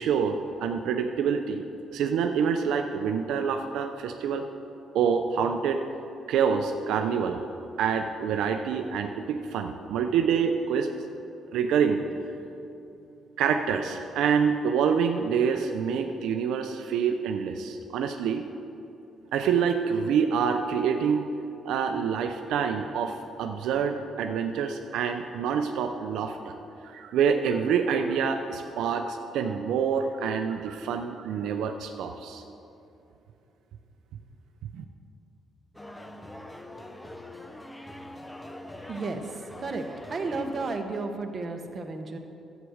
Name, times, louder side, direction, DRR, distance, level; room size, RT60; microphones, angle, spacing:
voice 1, 0.0-1.6 1.9-4.4 4.9-5.8 6.3-7.4 7.8-10.9 11.5-12.0 13.4-18.5 19.3-21.3 21.6-26.5 26.8-32.4 34.7-34.8, right 7 dB, 85° right, 5 dB, 0.5 m, -26 dB
sound 1, 35.7-40.8, left 1 dB, 10° left, 0.8 m, -43 dB
voice 2, 38.9-42.2, right 3 dB, 40° right, 4 dB, 1.2 m, -33 dB
11.0 x 8.2 x 6.4 m, 2.7 s
cardioid pair, 90°, 0 cm